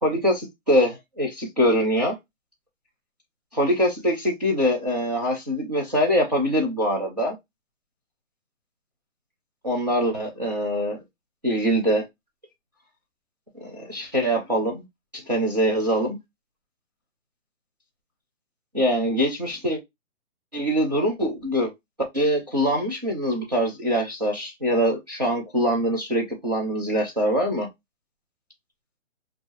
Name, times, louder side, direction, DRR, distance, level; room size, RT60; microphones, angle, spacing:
voice 1, 0.0-2.1 3.5-7.4 9.6-11.0 11.4-12.0 13.6-14.8 15.1-16.2 18.7-19.8 20.5-21.7 22.1-27.7, equal, 35° right, 0.5 m, -23 dB
3.2 x 2.3 x 2.5 m
hypercardioid pair, 180°, 39 cm